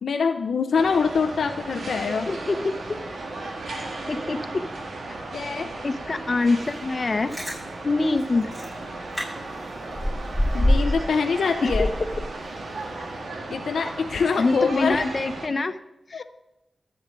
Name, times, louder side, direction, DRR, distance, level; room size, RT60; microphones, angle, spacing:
voice 1, 0.0-2.3 5.3-5.7 10.5-11.9 13.5-15.0 16.1-16.2, left 5 dB, 85° left, 6 dB, 0.6 m, -24 dB
sound 1, 0.7-15.5, right 2 dB, 75° right, 1.8 m, -35 dB
voice 2, 2.3-2.7 4.1-4.6 5.8-7.3 7.8-8.5 14.4-15.8 16.1-16.2, left 3 dB, 50° left, 9 dB, 1.0 m, -24 dB
Chewing mastication, 7.1-7.6 8.2-8.3 8.5-8.7 9.1-9.2 9.6-11.1 11.4-12.7 13.0-13.1, left 1 dB, 20° right, 5.7 m, -24 dB
23.0 x 8.0 x 3.9 m, 0.91 s
cardioid pair, 60°, 0 cm